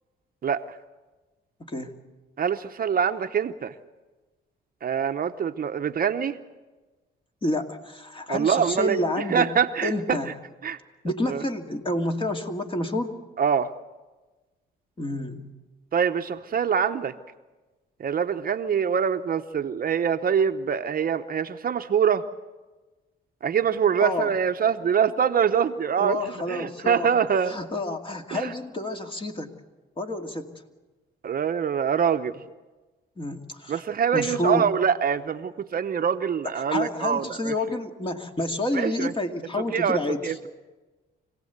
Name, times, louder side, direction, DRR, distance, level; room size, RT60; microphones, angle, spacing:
voice 1, 1.6-1.9 7.4-9.5 9.8-10.3 11.0-13.1 15.0-15.5 24.0-24.3 26.0-27.1 27.4-29.5 30.0-30.5 33.2-33.8 34.1-34.7 36.5-40.3, left 1 dB, 25° left, 4 dB, 2.2 m, -29 dB
voice 2, 2.4-3.7 4.8-6.4 8.3-9.0 9.3-10.2 10.6-10.8 11.3-11.4 13.4-13.7 15.9-17.1 18.0-22.2 23.4-27.6 28.3-28.5 31.2-32.4 33.7-37.5 38.7-39.1 39.7-40.3, right 7 dB, 45° right, 8 dB, 0.9 m, -24 dB
25.5 x 17.0 x 8.1 m, 1.2 s
cardioid pair, 90°, 20 cm